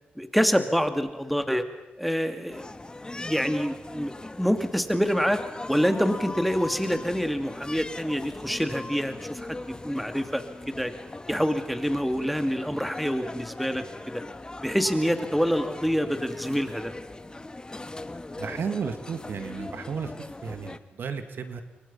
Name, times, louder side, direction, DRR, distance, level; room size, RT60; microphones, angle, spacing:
voice 1, 0.2-1.6 2.0-2.7 3.2-5.4 5.7-9.6 9.8-10.9 11.3-13.8 14.6-16.9, equal, ahead, 8 dB, 2.5 m, -26 dB
sound 1, 2.5-20.8, left 2 dB, 25° left, 1.4 m, -40 dB
voice 2, 18.4-21.6, right 6 dB, 75° right, 8 dB, 2.1 m, -34 dB
28.0 x 23.5 x 5.6 m, 1.0 s
cardioid pair, 60°, 4 cm